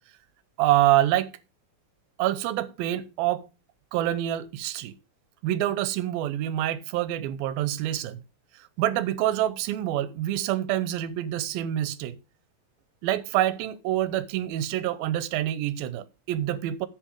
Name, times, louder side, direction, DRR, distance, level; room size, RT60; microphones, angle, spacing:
voice 1, 0.6-1.3 2.2-3.5 3.9-4.9 5.4-8.2 8.6-12.2 13.0-16.9, right 13 dB, 85° right, 2.5 m, -26 dB
10.5 x 8.1 x 3.6 m
omnidirectional pair, 4.3 m